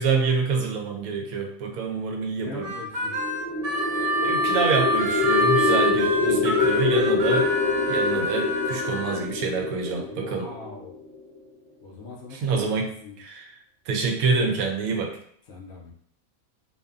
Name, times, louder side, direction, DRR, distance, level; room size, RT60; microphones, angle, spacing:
voice 1, 0.0-2.7 4.0-7.5 7.9-10.5 12.3-13.5 13.9-15.2, right 4 dB, 80° right, 2 dB, 1.0 m, -27 dB
voice 2, 2.4-3.1 6.2-6.8 10.1-11.0 11.8-13.2 15.5-15.9, left 3 dB, 65° left, -2 dB, 0.7 m, -42 dB
Harmonica, 2.6-9.2, equal, 55° right, 0.6 m, -26 dB
sound 1, 3.0-11.2, left 4 dB, 20° right, 1.1 m, -26 dB
2.6 x 2.5 x 2.3 m, 0.64 s
omnidirectional pair, 1.5 m